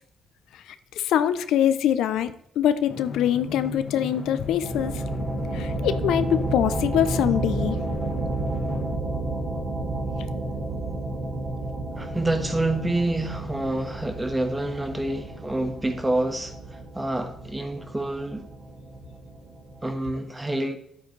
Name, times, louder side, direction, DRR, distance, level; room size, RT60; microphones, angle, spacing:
voice 1, 1.0-5.0 5.5-7.8, left 10 dB, 85° left, 0.6 m, -24 dB
Drum, 2.9-9.0, left 4 dB, 45° left, 1.2 m, -38 dB
sound 1, 4.6-20.0, right 2 dB, 55° right, 2.6 m, -31 dB
voice 2, 12.0-18.5 19.8-20.8, right 1 dB, 15° right, 1.4 m, -27 dB
10.5 x 8.6 x 3.2 m
cardioid pair, 90°, 0 cm